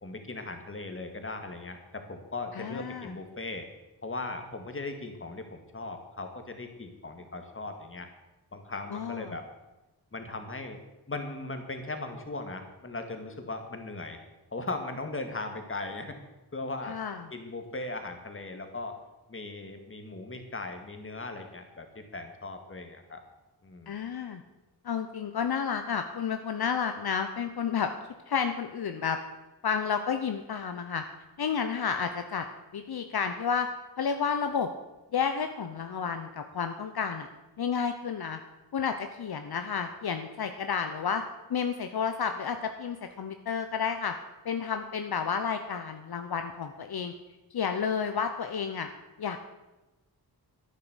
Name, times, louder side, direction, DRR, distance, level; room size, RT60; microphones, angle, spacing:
voice 1, 0.0-3.7 4.0-8.1 8.5-9.5 10.1-10.8 11.1-14.2 14.5-16.2 16.5-17.0 17.3-19.0 19.3-21.9 22.1-23.2 23.6-24.0, left 2 dB, 30° left, 6 dB, 2.1 m, -38 dB
voice 2, 2.5-3.1 8.9-9.4 16.9-17.2 23.9-24.4 24.8-27.9 28.3-29.2 29.6-31.0 31.4-32.4 32.7-33.7 34.0-34.7 35.1-37.3 37.6-38.4 38.7-41.2 41.5-44.1 44.4-47.1 47.5-48.9 49.2-49.4, left 6 dB, 70° left, 7 dB, 1.0 m, -31 dB
11.5 x 9.7 x 8.1 m, 1.0 s
wide cardioid pair, 90°, 39 cm